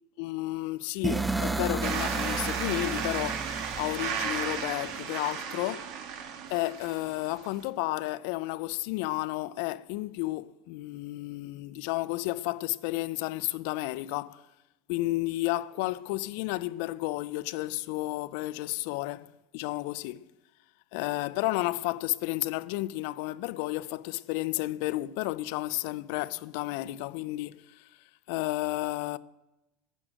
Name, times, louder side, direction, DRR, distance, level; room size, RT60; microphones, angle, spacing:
voice 1, 0.2-5.9 6.5-14.4 14.9-19.3 19.5-20.3 20.9-27.9 28.3-29.2, left 19 dB, 65° left, 0.4 m, -32 dB
sound 1, 1.0-5.0, right 3 dB, 10° right, 0.4 m, -33 dB
sound 2, 1.8-7.6, right 7 dB, 55° right, 1.4 m, -34 dB
15.0 x 6.4 x 8.9 m
supercardioid pair, 145°, 0 cm